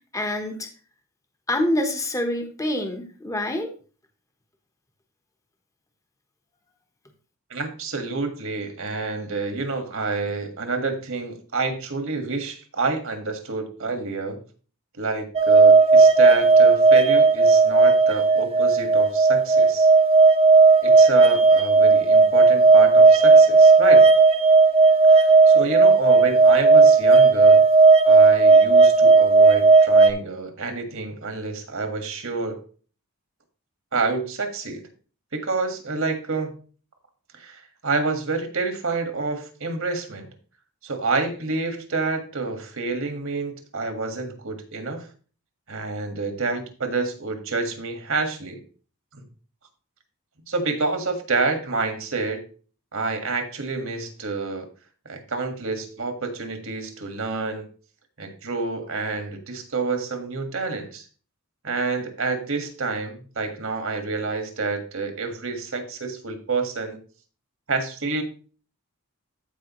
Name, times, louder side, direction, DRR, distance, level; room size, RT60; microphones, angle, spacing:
voice 1, 0.1-0.7 1.5-3.7, left 1 dB, 15° left, 4 dB, 1.0 m, -26 dB
voice 2, 7.5-14.4 15.0-19.9 20.8-24.1 25.1-27.6 28.0-32.6 33.9-34.8 35.3-36.5 37.3-40.3 40.8-45.1 45.7-48.6 49.1-49.3 50.5-52.5 52.9-54.7 55.0-57.6 58.2-61.0 61.6-67.0 67.7-68.2, right 3 dB, 65° right, 6 dB, 1.7 m, -28 dB
sound 1, 15.4-30.1, right 4 dB, 25° right, 0.6 m, -14 dB
14.0 x 5.0 x 3.0 m, 0.38 s
head